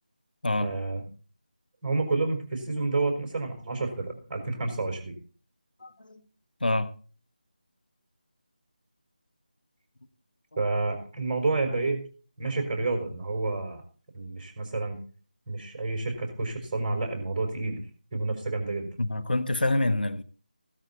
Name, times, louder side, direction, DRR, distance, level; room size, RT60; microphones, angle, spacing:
voice 1, 0.6-1.0 1.8-5.1 10.6-12.0 12.4-13.8 14.1-15.0 15.5-17.8 18.1-18.9, right 3 dB, 20° right, 4.7 m, -29 dB
voice 2, 5.8-6.2 6.6-6.9 19.0-20.2, left 2 dB, 75° left, 1.5 m, -26 dB
16.5 x 12.5 x 4.1 m
figure-of-eight pair, 165°, 5 cm